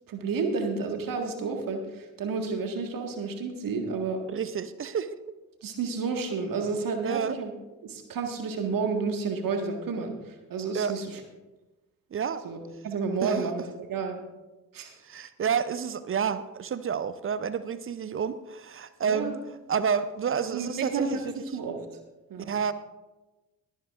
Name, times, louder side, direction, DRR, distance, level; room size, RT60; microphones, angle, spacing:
voice 1, 0.1-4.2 5.6-7.5 7.8-11.2 12.4-12.6 12.8-14.2 14.7-14.9 19.0-19.4 20.5-21.8 22.3-22.5, right 4 dB, 45° right, 4 dB, 1.9 m, -31 dB
voice 2, 4.3-5.2 7.0-7.3 10.7-10.9 12.1-12.4 13.2-13.5 15.0-19.4 19.7-21.2 22.5-22.7, right 7 dB, 30° right, 14 dB, 0.6 m, -29 dB
22.0 x 9.1 x 2.6 m, 1.1 s
figure-of-eight pair, 45°, 45 cm